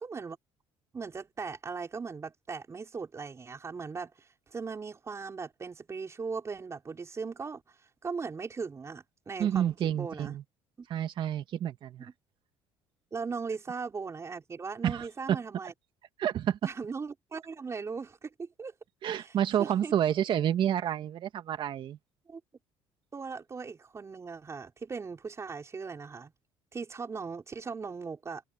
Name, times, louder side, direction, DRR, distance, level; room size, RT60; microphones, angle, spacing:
voice 1, 0.0-0.4 0.9-4.1 4.5-7.6 8.0-10.4 10.8-10.9 12.0-12.1 13.1-15.7 16.6-18.7 19.1-19.9 22.3-22.4 23.1-26.3 26.7-28.4, right 5 dB, 30° right, 4.8 m, -38 dB
voice 2, 9.4-10.4 10.9-12.1 14.8-15.4 16.2-16.6 19.0-22.0, right 10 dB, 55° right, 2.0 m, -29 dB
supercardioid pair, 90°, 10 cm